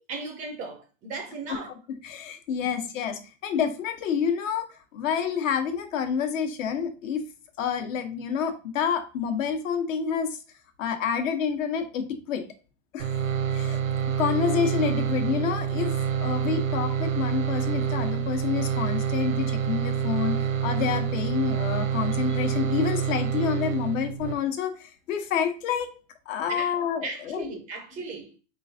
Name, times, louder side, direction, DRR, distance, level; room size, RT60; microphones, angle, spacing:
voice 1, 0.0-1.7 26.5-26.7 27.0-28.3, right 3 dB, 20° right, 0.4 m, -36 dB
voice 2, 2.0-4.7 4.9-7.2 7.6-10.4 10.8-12.4 12.9-13.1 13.5-13.8 14.2-15.9 16.2-25.9 26.3-27.5, left 7 dB, 70° left, 1.1 m, -28 dB
sound 1, 13.0-24.3, right 8 dB, 85° right, 0.8 m, -27 dB
4.2 x 3.7 x 2.7 m
supercardioid pair, 145°, 40 cm